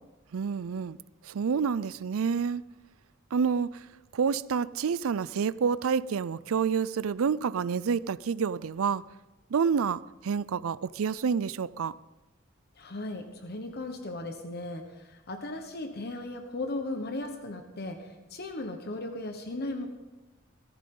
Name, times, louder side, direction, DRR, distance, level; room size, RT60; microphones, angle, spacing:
voice 1, 0.3-1.0 1.2-2.6 3.3-3.9 4.1-9.0 9.5-12.0, right 6 dB, 90° right, 0.4 m, -28 dB
voice 2, 12.7-19.9, left 2 dB, 50° left, 1.2 m, -37 dB
18.0 x 14.5 x 3.9 m
head